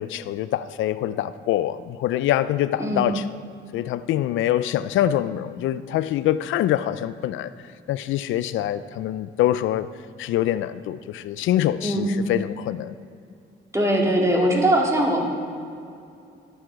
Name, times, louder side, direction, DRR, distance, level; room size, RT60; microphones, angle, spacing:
voice 1, 0.0-3.3 3.7-7.5 7.9-9.9 10.2-12.9, left 12 dB, 80° left, 14 dB, 0.4 m, -24 dB
voice 2, 11.8-12.3 13.7-15.2, right 1 dB, 15° right, -1 dB, 2.3 m, -21 dB
12.5 x 7.6 x 6.3 m, 2.5 s
cardioid pair, 90°, 20 cm